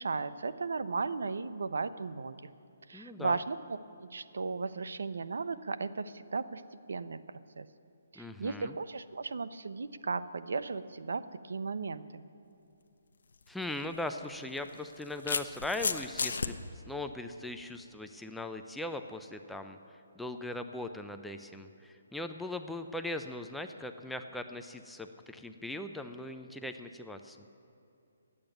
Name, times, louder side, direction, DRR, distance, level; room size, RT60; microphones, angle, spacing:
voice 1, 0.0-2.4 2.9-6.6 6.9-7.7 8.1-12.2, right 4 dB, 75° right, 13 dB, 0.6 m, -36 dB
voice 2, 2.9-3.4 8.2-8.7 13.5-16.6 16.8-19.8 20.2-27.4, left 2 dB, ahead, 6 dB, 0.3 m, -39 dB
sound 1, 13.3-13.5 14.6-16.5, left 4 dB, 75° left, 0.7 m, -33 dB
12.0 x 8.7 x 9.0 m, 2.7 s
hypercardioid pair, 170°, 0 cm